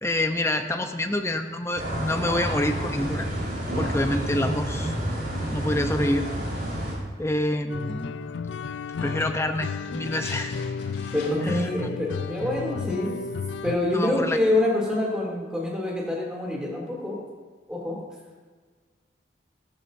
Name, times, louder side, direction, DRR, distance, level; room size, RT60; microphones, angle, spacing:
voice 1, 0.0-3.3 3.8-4.9 5.5-6.3 7.2-8.2 9.0-10.5 11.5-11.9 13.9-14.4, left 1 dB, 15° left, 6 dB, 0.7 m, -27 dB
sound 1, 1.8-6.9, right 1 dB, 50° right, 4.4 m, -29 dB
sound 2, 7.7-13.8, left 5 dB, 90° left, 0.4 m, -33 dB
sound 3, 8.8-11.7 11.9-12.0, left 3 dB, 65° left, 4.0 m, -44 dB
voice 2, 11.1-13.1 13.6-17.2 17.7-18.0, left 1 dB, 5° right, -4 dB, 2.8 m, -26 dB
15.5 x 14.0 x 2.7 m, 1.5 s
head